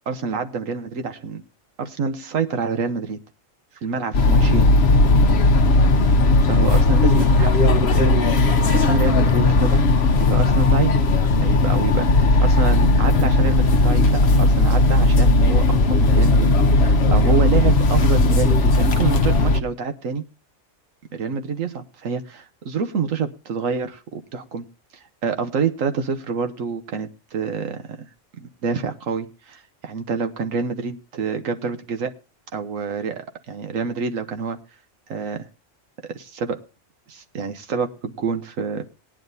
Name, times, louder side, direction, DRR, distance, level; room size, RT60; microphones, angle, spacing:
voice 1, 0.1-1.4 1.8-3.2 3.8-4.7 6.4-8.2 8.6-9.8 10.2-11.0 11.4-20.2 21.1-24.6 25.2-28.1 28.4-32.1 32.5-34.6 35.1-35.5 36.1-36.6 37.1-38.8, right 5 dB, 80° right, 8 dB, 1.4 m, -27 dB
sound 1, 4.1-19.6, left 2 dB, 60° left, 1.0 m, -16 dB
19.0 x 9.9 x 2.7 m, 0.31 s
omnidirectional pair, 1.3 m